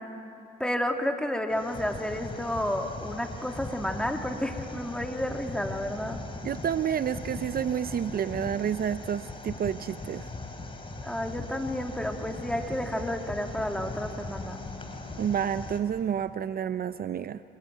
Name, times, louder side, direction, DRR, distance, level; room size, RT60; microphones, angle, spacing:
voice 1, 0.6-6.2 11.0-14.6, left 1 dB, 5° left, 4 dB, 2.4 m, -31 dB
sound 1, 1.5-15.8, left 2 dB, 25° left, 3.4 m, -39 dB
voice 2, 6.4-10.3 15.2-17.4, right 8 dB, 50° right, 13 dB, 0.6 m, -29 dB
26.5 x 20.5 x 9.4 m, 2.8 s
cardioid pair, 90°, 20 cm